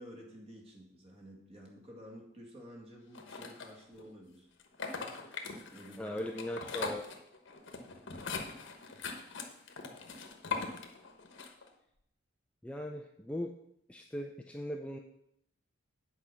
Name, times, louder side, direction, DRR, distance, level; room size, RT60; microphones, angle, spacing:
voice 1, 0.0-4.5 5.3-6.3 8.5-8.6, equal, 30° right, 0 dB, 2.0 m, -52 dB
sound 1, 3.1-4.0 4.6-11.7, left 4 dB, 60° left, 1.1 m, -41 dB
voice 2, 6.0-7.1 12.6-13.5 13.9-15.0, left 1 dB, 5° left, 2 dB, 0.4 m, -39 dB
8.6 x 4.9 x 6.8 m, 0.76 s
head